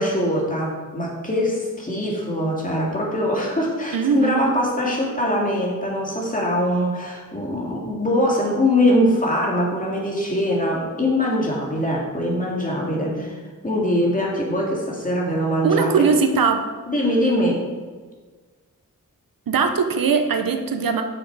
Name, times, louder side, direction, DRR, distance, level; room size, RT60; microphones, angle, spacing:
voice 1, 0.0-13.4 13.6-15.9 16.9-17.6, left 1 dB, 25° left, -3 dB, 2.2 m, -22 dB
voice 2, 3.9-4.6 15.6-16.7 19.5-21.0, right 5 dB, 85° right, 7 dB, 0.8 m, -20 dB
8.4 x 6.3 x 4.7 m, 1.4 s
wide cardioid pair, 95°, 33 cm